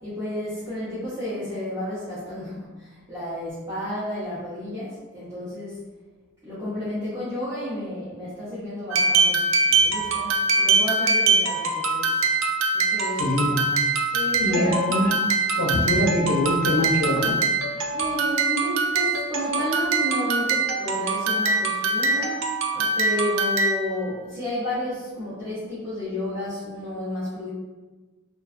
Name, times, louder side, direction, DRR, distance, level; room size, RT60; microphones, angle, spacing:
voice 1, 0.0-5.9 6.4-12.2 12.7-13.6 14.1-14.8 17.9-27.5, left 1 dB, 15° right, -14 dB, 0.6 m, -32 dB
sound 1, 8.9-24.0, right 3 dB, 70° right, 0.3 m, -23 dB
voice 2, 13.2-13.7 14.4-15.1 15.6-17.3 17.8-17.9, left 1 dB, 85° left, -2 dB, 0.6 m, -23 dB
2.4 x 2.3 x 2.4 m, 1.3 s
head